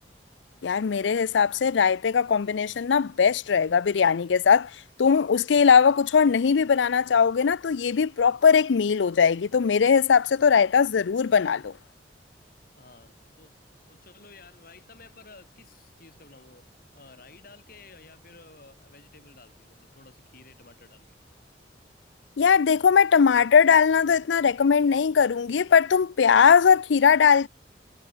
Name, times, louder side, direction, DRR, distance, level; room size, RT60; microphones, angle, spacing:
voice 1, 0.6-4.7 5.0-11.7 22.4-27.5, left 6 dB, 90° left, 0.5 m, -20 dB
voice 2, 12.8-13.5 13.9-16.7 16.9-21.2, left 3 dB, 55° left, 6.7 m, -52 dB
head